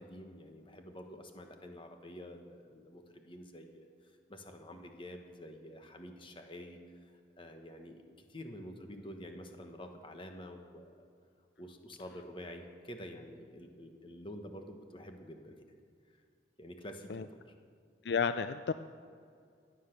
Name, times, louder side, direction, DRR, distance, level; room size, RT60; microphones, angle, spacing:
voice 1, 0.0-11.1 11.6-15.6 16.1-16.2 16.6-17.5, equal, 30° left, 5 dB, 1.3 m, -48 dB
voice 2, 18.0-18.7, left 6 dB, 65° left, 11 dB, 0.4 m, -31 dB
16.0 x 10.0 x 6.7 m, 2.3 s
head